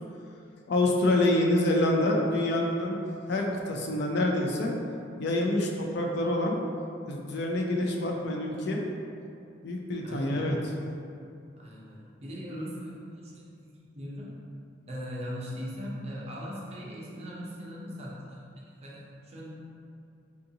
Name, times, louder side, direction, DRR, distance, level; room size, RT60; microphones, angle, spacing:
voice 1, 0.7-3.0 3.3-4.7 5.2-6.6 7.1-8.9 9.6-10.6, left 1 dB, 60° left, 0 dB, 0.4 m, -26 dB
voice 2, 10.0-10.6 11.6-14.3 14.9-18.4 18.8-19.5, equal, 35° right, -5 dB, 0.6 m, -40 dB
3.6 x 2.5 x 2.7 m, 2.5 s
head